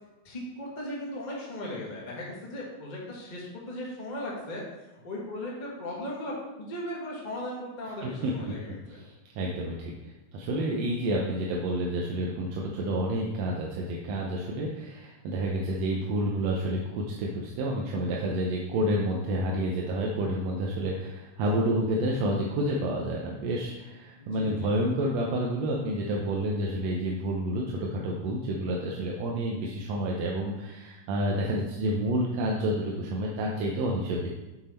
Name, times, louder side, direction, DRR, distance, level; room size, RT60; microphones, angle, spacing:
voice 1, 0.2-9.0 24.2-24.8, left 1 dB, 25° left, -4 dB, 1.1 m, -37 dB
voice 2, 8.0-8.3 9.0-34.3, right 1 dB, 70° right, -2 dB, 1.9 m, -29 dB
6.9 x 6.0 x 4.3 m, 1.1 s
omnidirectional pair, 3.3 m